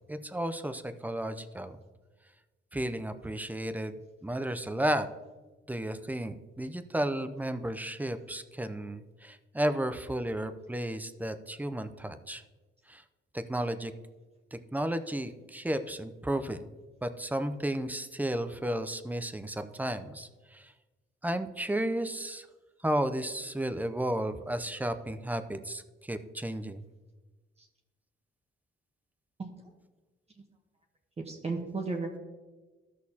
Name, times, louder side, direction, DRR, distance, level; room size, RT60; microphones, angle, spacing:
voice 1, 0.1-1.8 2.7-5.1 5.7-12.4 12.9-13.0 13.3-13.9 14.5-16.7 17.0-20.7 21.2-22.5 22.8-26.8, right 1 dB, 10° right, 10 dB, 0.5 m, -33 dB
voice 2, 31.2-32.2, right 3 dB, 30° right, 1 dB, 1.0 m, -34 dB
14.0 x 6.3 x 2.8 m, 1.2 s
cardioid pair, 115°, 21 cm